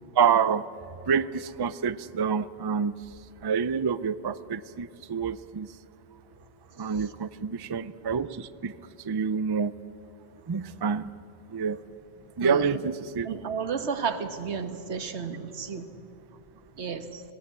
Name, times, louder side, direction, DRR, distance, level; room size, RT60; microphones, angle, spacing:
voice 1, 0.2-0.6 1.1-2.9 3.4-5.7 6.8-8.7 9.0-9.7 10.5-11.1 11.5-11.8 12.4-13.3, right 6 dB, 35° right, 15 dB, 0.4 m, -27 dB
voice 2, 12.4-12.8 13.2-15.9 16.8-17.2, right 6 dB, 90° right, 9 dB, 1.5 m, -32 dB
26.0 x 17.0 x 8.1 m, 2.6 s
omnidirectional pair, 1.1 m